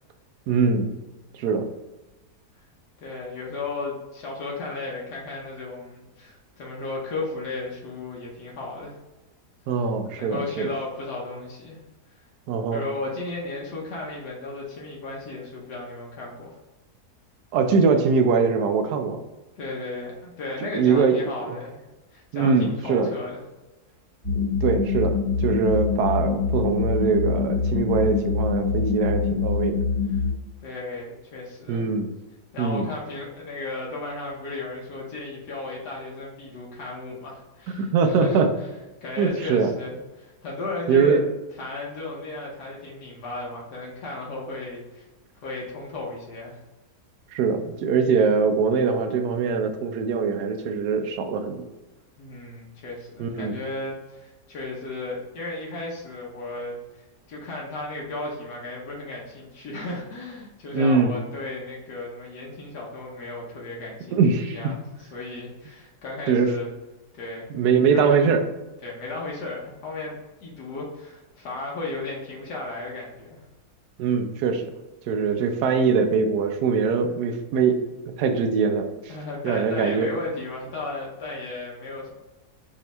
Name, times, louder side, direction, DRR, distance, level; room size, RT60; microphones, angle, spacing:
voice 1, 0.5-0.9 1.4-1.7 9.7-10.7 12.5-12.8 17.5-19.2 20.7-21.2 22.3-23.1 24.3-29.8 31.7-32.1 32.6-32.9 37.8-38.5 39.2-39.7 40.9-41.2 47.3-51.7 53.2-53.6 60.7-61.1 64.1-64.7 66.3-66.5 67.5-68.4 74.0-74.7 75.1-77.8 78.2-78.9 79.4-80.1, right 5 dB, 80° right, 6 dB, 1.2 m, -22 dB
voice 2, 3.0-8.9 10.2-11.8 12.1-12.2 12.7-16.5 19.6-21.8 22.1-23.4 30.6-31.8 32.5-38.4 39.0-41.2 41.5-45.1 45.3-46.6 52.2-66.7 67.1-67.5 67.9-68.3 68.8-73.4 79.1-82.2, left 2 dB, 90° left, -3 dB, 1.5 m, -35 dB
sound 1, 24.2-30.3, left 5 dB, 15° left, 1.2 m, -24 dB
5.1 x 2.8 x 3.3 m, 1.1 s
omnidirectional pair, 1.7 m